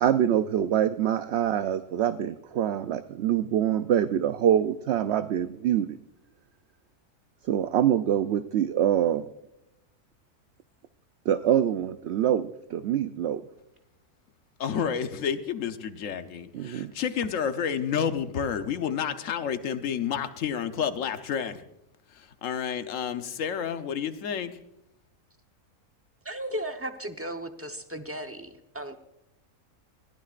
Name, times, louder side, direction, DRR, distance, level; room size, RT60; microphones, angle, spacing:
voice 1, 0.0-6.0 7.5-9.3 11.3-13.4 16.5-16.9, right 10 dB, 65° right, 10 dB, 0.7 m, -25 dB
voice 2, 14.6-21.6 22.2-24.6, left 7 dB, 65° left, 9 dB, 1.2 m, -30 dB
voice 3, 26.2-29.0, right 1 dB, 10° right, 6 dB, 0.7 m, -35 dB
21.0 x 15.0 x 2.5 m, 0.86 s
omnidirectional pair, 1.5 m